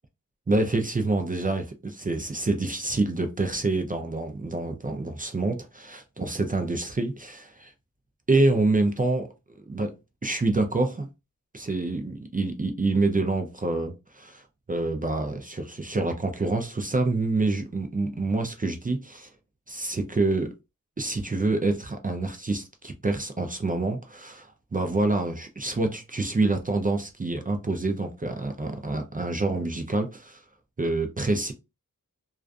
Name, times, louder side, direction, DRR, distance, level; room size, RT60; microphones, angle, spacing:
voice 1, 0.5-7.7 8.3-9.3 9.7-10.0 10.2-11.1 11.5-14.4 14.7-19.3 19.7-20.5 21.0-30.4 30.8-31.5, right 2 dB, 25° right, 0.4 m, -27 dB
2.4 x 2.4 x 2.2 m
wide cardioid pair, 65°, 34 cm